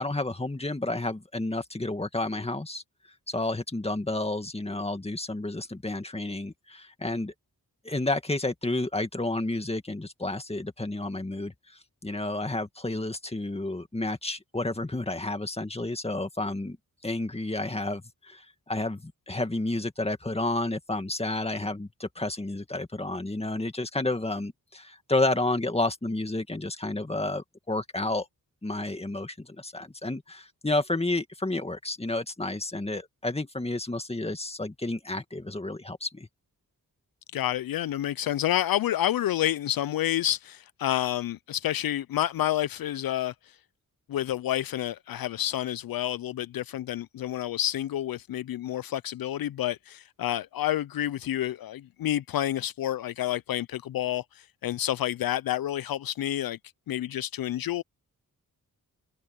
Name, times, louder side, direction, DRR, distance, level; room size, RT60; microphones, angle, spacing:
voice 1, 0.0-2.8 3.3-7.3 7.8-11.5 12.0-16.8 17.0-28.3 28.6-36.3, left 2 dB, 15° left, 2.0 m, -31 dB
voice 2, 37.3-43.3 44.1-56.6 56.9-57.8, left 12 dB, 75° left, 0.5 m, -29 dB
wide cardioid pair, 85°, 36 cm